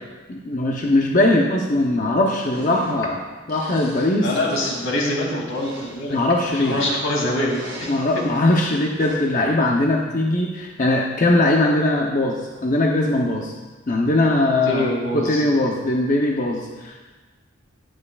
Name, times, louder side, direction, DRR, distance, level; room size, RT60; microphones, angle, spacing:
voice 1, 0.3-3.2 3.5-4.3 6.1-6.8 7.9-12.4 12.6-13.5 13.9-17.0, left 2 dB, 40° left, -1 dB, 0.8 m, -20 dB
sound 1, 2.5-3.1 3.5-4.2 4.5-4.9 5.5-7.2 7.5-8.4 9.0-9.4, right 1 dB, 20° right, 2.8 m, -38 dB
voice 2, 4.2-6.2 6.5-7.7 14.7-15.4, left 1 dB, 85° left, -2 dB, 2.8 m, -24 dB
18.0 x 7.7 x 2.4 m, 1.3 s
head